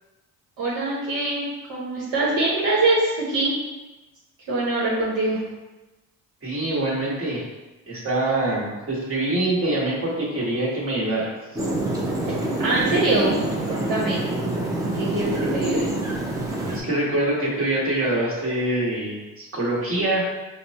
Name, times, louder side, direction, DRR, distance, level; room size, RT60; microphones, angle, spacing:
voice 1, 0.6-3.5 4.5-5.4 12.3-13.4 13.7-14.2 14.8-15.9, right 2 dB, 75° right, -7 dB, 1.0 m, -24 dB
voice 2, 6.4-7.4 7.9-11.3 16.6-20.2, right 1 dB, 40° right, -6 dB, 1.5 m, -24 dB
sound 1, 11.6-16.8, right 1 dB, 10° right, 0.6 m, -26 dB
5.0 x 2.1 x 2.9 m, 1.1 s
cardioid pair, 100°, 34 cm